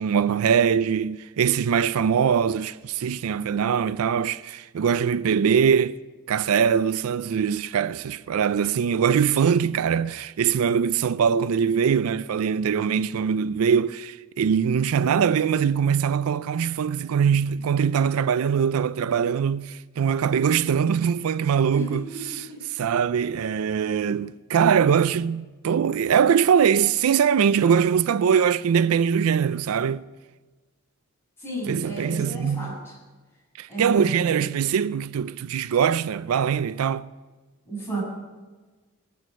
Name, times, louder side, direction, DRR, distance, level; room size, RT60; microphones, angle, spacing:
voice 1, 0.0-6.0 6.3-30.0 31.7-32.7 33.6-37.1, right 7 dB, 75° right, 0.4 m, -22 dB
voice 2, 21.7-22.6 31.4-33.0 33.7-34.4 37.7-38.0, right 2 dB, 10° left, 7.0 m, -33 dB
19.5 x 9.3 x 6.8 m
head